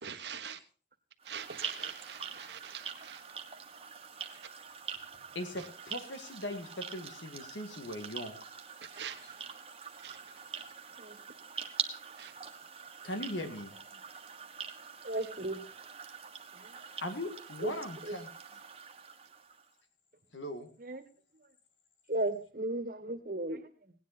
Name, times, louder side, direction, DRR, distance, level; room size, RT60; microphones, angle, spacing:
voice 1, 0.0-0.6 1.3-3.2 8.9-9.2 10.0-10.2 12.2-12.3, right 8 dB, 65° right, 1.3 m, -43 dB
sound 1, 1.2-19.7, right 6 dB, 30° right, 1.4 m, -44 dB
voice 2, 5.3-8.4 13.0-13.7 17.0-18.3 20.3-20.7, left 1 dB, 85° left, 2.2 m, -39 dB
voice 3, 15.0-15.6 16.5-16.8 17.6-17.7 18.0-18.2 20.8-21.0 21.4-21.5 22.1-23.9, right 1 dB, 50° right, 1.6 m, -36 dB
18.0 x 10.0 x 4.4 m
head